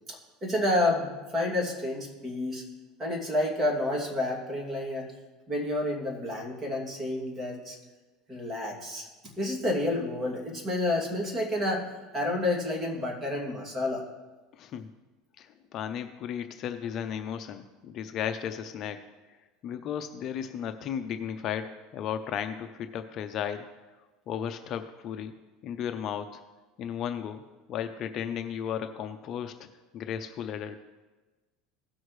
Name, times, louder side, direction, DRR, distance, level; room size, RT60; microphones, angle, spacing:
voice 1, 0.4-2.6 3.0-5.1 5.5-7.8 8.3-9.1 9.4-11.9 12.1-14.0, left 1 dB, 25° right, -2 dB, 2.5 m, -29 dB
voice 2, 14.5-14.9 15.4-19.0 19.6-23.7 24.3-25.3 25.6-26.4 26.8-27.4 27.7-29.7 29.9-30.8, left 8 dB, 45° left, 7 dB, 0.6 m, -34 dB
17.0 x 6.4 x 3.2 m, 1.2 s
supercardioid pair, 135°, 0 cm